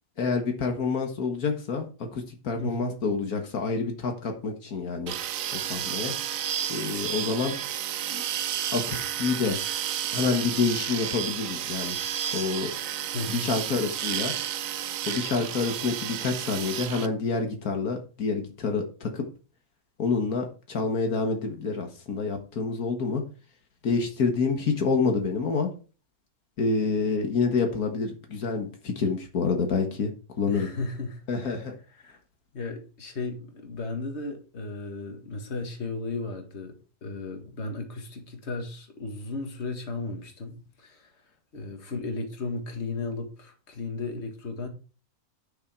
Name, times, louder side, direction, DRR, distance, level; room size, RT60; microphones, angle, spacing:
voice 1, 0.2-5.1 5.5-6.1 6.7-7.6 8.1-8.2 8.7-9.6 10.1-12.0 12.3-12.7 13.3-14.3 15.1-19.3 20.0-23.2 23.8-25.7 26.6-30.1 30.4-30.7 31.3-31.7, left 4 dB, 80° left, 2.0 m, -27 dB
voice 2, 2.6-3.0 13.1-13.5 30.5-32.2 32.5-41.2 41.5-44.7, left 3 dB, 50° left, 2.0 m, -35 dB
sound 1, 5.1-17.1, right 10 dB, 70° right, 1.0 m, -31 dB
10.0 x 6.6 x 4.6 m
omnidirectional pair, 1.5 m